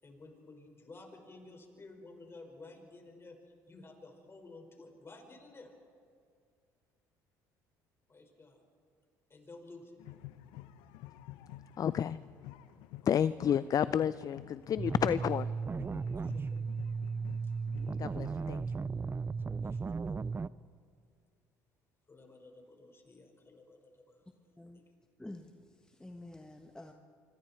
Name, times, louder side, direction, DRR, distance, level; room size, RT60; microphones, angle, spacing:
voice 1, 0.0-3.4 3.7-5.7 8.1-8.6 9.3-10.0 16.2-16.6 17.4-17.5 19.6-20.2 22.1-24.2 24.7-24.8, left 2 dB, 30° left, 3 dB, 5.3 m, -53 dB
sound 1, 10.0-18.8, left 14 dB, 80° left, 0.9 m, -51 dB
voice 2, 11.8-12.2 13.1-15.5 18.0-18.6, left 9 dB, 45° left, 16 dB, 0.5 m, -30 dB
sound 2, 14.8-20.5, right 5 dB, 25° right, 0.5 m, -36 dB
voice 3, 25.2-26.9, left 1 dB, 10° left, 4 dB, 1.5 m, -49 dB
25.5 x 25.5 x 4.5 m, 2.3 s
supercardioid pair, 75°, 9 cm